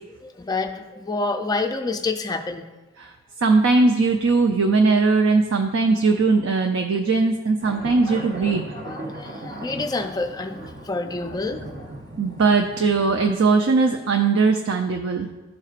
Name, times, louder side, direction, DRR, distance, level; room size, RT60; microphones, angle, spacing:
voice 1, 0.2-2.6 7.9-10.6 10.8-11.9, left 3 dB, 20° left, 5 dB, 0.4 m, -28 dB
voice 2, 3.4-8.6 12.2-15.3, right 4 dB, 60° right, 4 dB, 0.4 m, -19 dB
sound 1, 7.6-13.3, right 1 dB, 45° right, 0.8 m, -38 dB
12.5 x 4.3 x 2.4 m, 1.2 s
head